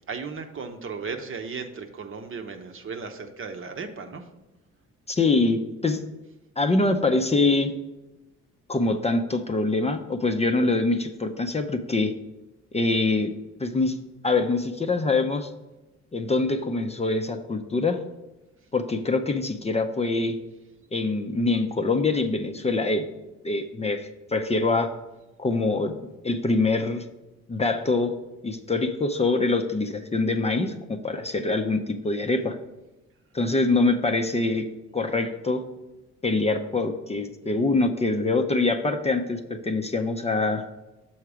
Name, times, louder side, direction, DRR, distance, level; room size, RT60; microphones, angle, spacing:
voice 1, 0.0-4.3, right 5 dB, 45° right, 7 dB, 0.8 m, -36 dB
voice 2, 5.1-6.0 6.6-7.7 8.7-12.1 12.7-13.3 13.6-14.0 14.2-15.5 16.1-18.0 18.7-20.4 20.9-23.0 23.4-24.9 25.4-27.0 27.5-28.1 28.4-32.6 33.3-34.6 34.9-35.6 36.2-40.6, left 3 dB, 20° left, 5 dB, 0.5 m, -24 dB
7.1 x 4.5 x 4.9 m, 1.0 s
cardioid pair, 90°, 30 cm